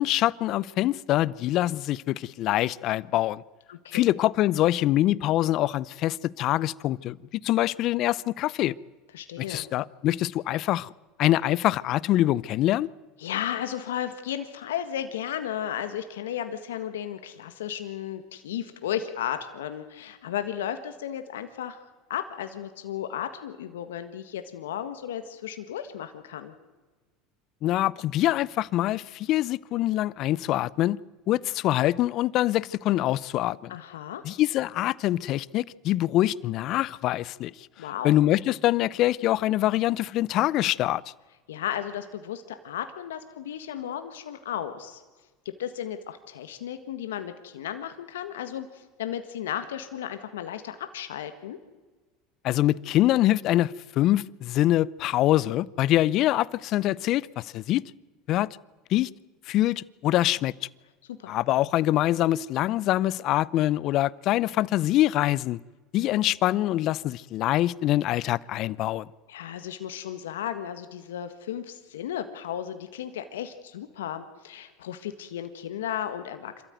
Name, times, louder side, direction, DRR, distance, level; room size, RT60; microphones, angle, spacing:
voice 1, 0.0-3.4 3.9-8.7 9.4-10.9 11.2-12.9 27.6-31.0 31.3-33.7 34.2-37.5 38.0-41.0 52.4-57.8 58.3-58.5 58.9-59.1 59.5-60.5 61.3-65.6 65.9-69.1, left 14 dB, 55° left, 0.6 m, -24 dB
voice 2, 3.7-4.0 9.1-9.7 13.2-21.8 22.1-26.5 33.7-34.2 37.8-38.1 41.5-45.0 45.6-51.6 61.2-61.3 69.3-76.6, left 10 dB, 85° left, 1.6 m, -34 dB
26.5 x 14.0 x 9.2 m
hypercardioid pair, 90°, 0 cm